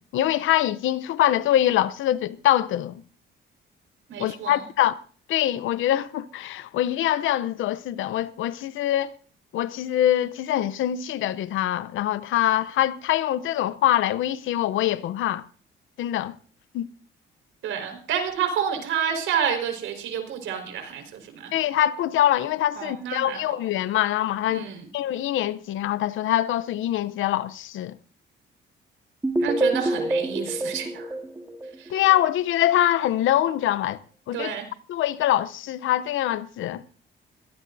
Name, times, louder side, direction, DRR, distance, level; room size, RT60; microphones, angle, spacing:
voice 1, 0.0-3.0 4.2-5.0 5.3-9.1 9.5-15.4 16.0-16.3 16.7-16.9 21.5-24.7 24.9-28.0 31.9-34.0 34.3-34.5 34.9-36.8, left 12 dB, 80° left, 0.7 m, -24 dB
voice 2, 4.1-4.6 17.6-21.5 22.8-23.4 24.5-24.8 29.4-31.1 31.8-31.9 34.3-34.7, right 8 dB, 85° right, 4.8 m, -29 dB
sound 1, 29.2-32.2, right 2 dB, 10° right, 2.6 m, -27 dB
24.0 x 18.0 x 2.7 m
cardioid pair, 90°, 20 cm